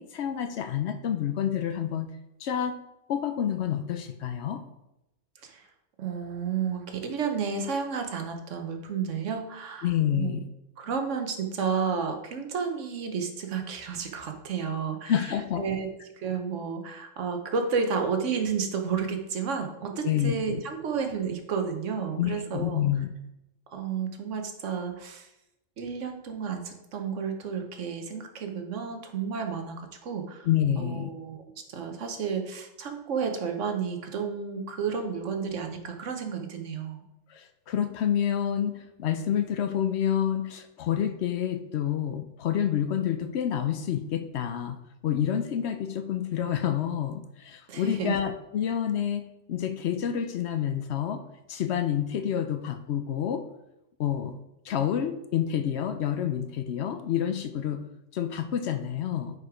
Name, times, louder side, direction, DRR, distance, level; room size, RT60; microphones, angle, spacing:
voice 1, 0.0-2.1 2.4-2.8 3.1-4.6 9.8-10.5 15.1-15.6 20.0-20.6 22.2-23.1 30.5-31.1 37.3-44.8 45.0-51.2 51.5-53.4 54.0-54.3 54.6-57.8 58.1-59.3, left 9 dB, 65° left, 9 dB, 0.8 m, -28 dB
voice 2, 6.0-10.3 10.8-15.1 15.6-15.9 16.2-22.8 23.7-25.3 25.8-30.5 30.8-37.0 47.7-48.2, right 6 dB, 75° right, 5 dB, 1.2 m, -31 dB
6.3 x 4.9 x 4.9 m, 0.89 s
omnidirectional pair, 1.3 m